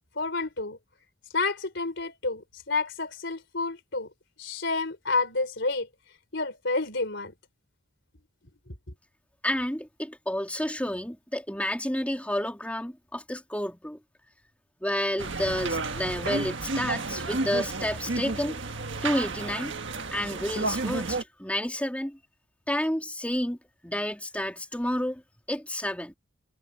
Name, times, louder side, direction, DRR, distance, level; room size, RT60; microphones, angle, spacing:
voice 1, 0.2-0.8 1.3-4.1 4.4-5.9 6.3-7.3, left 3 dB, 55° left, 4.3 m, -29 dB
voice 2, 9.4-14.0 14.8-18.6 19.0-19.7 20.1-22.2 22.7-23.6 23.8-25.2 25.5-26.1, left 1 dB, 5° left, 3.4 m, -30 dB
sound 1, 15.2-21.2, right 3 dB, 60° right, 1.6 m, -31 dB
head